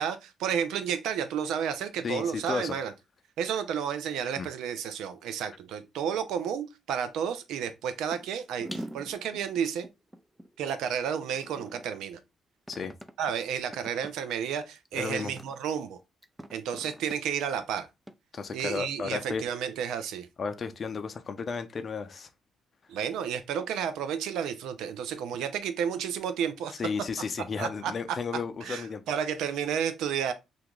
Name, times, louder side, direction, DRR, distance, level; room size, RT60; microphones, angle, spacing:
voice 1, 0.0-2.9 3.4-9.9 10.6-12.2 13.2-16.0 16.5-17.9 18.5-20.3 22.9-26.8 27.6-27.9 28.6-30.3, right 8 dB, 85° right, 0.5 m, -31 dB
voice 2, 2.0-2.8 4.4-4.5 12.7-12.9 14.9-15.3 18.3-19.4 20.4-22.3 26.8-29.0, left 5 dB, 45° left, 0.5 m, -33 dB
sound 1, 8.1-8.3 8.6-10.5 11.2-12.0 12.7-13.3 13.7-14.1 14.8-14.9 15.2-15.6 16.2-17.2 18.1-18.2 19.2-19.3, equal, 10° right, 0.3 m, -43 dB
2.9 x 2.5 x 3.5 m
cardioid pair, 90°, 0 cm